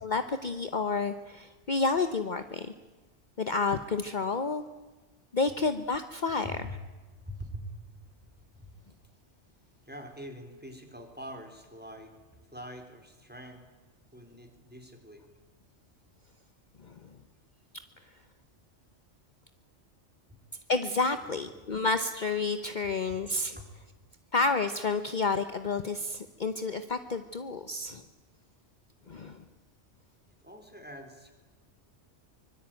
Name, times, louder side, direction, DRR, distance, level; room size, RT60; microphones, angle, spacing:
voice 1, 0.0-2.7 3.4-4.6 5.3-6.7 16.8-16.9 20.7-23.6 24.3-28.0 29.1-29.4, left 4 dB, 45° left, 10 dB, 1.1 m, -30 dB
voice 2, 6.4-6.8 7.1-8.7 9.8-13.7 14.1-15.3 20.3-20.4 21.1-21.7 23.1-23.2 23.5-23.7 30.4-31.3, equal, 10° right, 5 dB, 3.8 m, -45 dB
24.5 x 22.5 x 9.0 m, 1.2 s
omnidirectional pair, 1.2 m